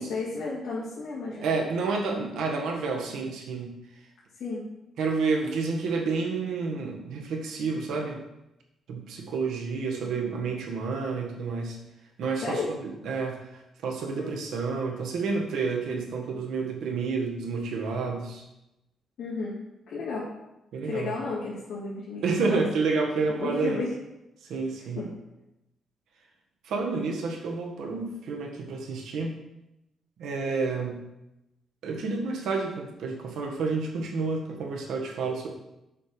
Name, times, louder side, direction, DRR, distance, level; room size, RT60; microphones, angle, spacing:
voice 1, 0.0-1.5 4.4-4.7 12.4-12.7 14.2-14.3 19.2-19.6 19.9-20.3 20.8-22.6 23.4-23.9 25.0-25.1, left 3 dB, 60° left, -8 dB, 2.4 m, -33 dB
voice 2, 1.4-3.7 5.0-8.2 8.9-11.8 12.2-18.4 20.7-21.2 22.2-23.8 24.4-25.1 26.6-29.4 30.2-31.0 31.8-35.5, right 4 dB, 80° right, 1 dB, 1.6 m, -30 dB
7.6 x 5.7 x 5.0 m, 0.92 s
cardioid pair, 170°, 0 cm